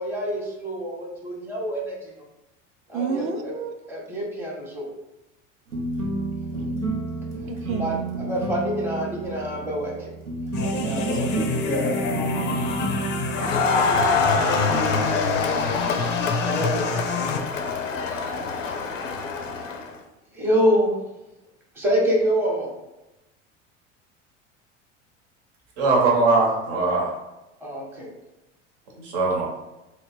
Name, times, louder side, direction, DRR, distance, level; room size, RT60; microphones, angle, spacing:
voice 1, 0.0-2.2 2.9-3.5 3.9-4.9 6.5-6.7 7.8-10.1 10.7-12.1 13.4-13.9 14.4-14.7 16.4-17.3 18.0-18.3 20.3-21.0 21.7-22.7 27.6-28.1, equal, 5° right, -4 dB, 0.8 m, -27 dB
voice 2, 2.9-3.7 7.4-8.0 10.6-11.3 12.4-12.9 14.5-15.0, right 6 dB, 35° right, 5 dB, 0.5 m, -32 dB
sound 1, 5.7-15.0, right 2 dB, 90° right, 0.7 m, -31 dB
sound 2, 10.5-17.4, left 4 dB, 30° left, 0.4 m, -27 dB
Crowd, 13.3-19.9, left 4 dB, 85° left, 0.5 m, -25 dB
voice 3, 25.8-27.1 29.0-29.5, right 3 dB, 65° right, -1 dB, 1.0 m, -20 dB
3.1 x 2.1 x 4.2 m, 0.97 s
figure-of-eight pair, 75°, 37 cm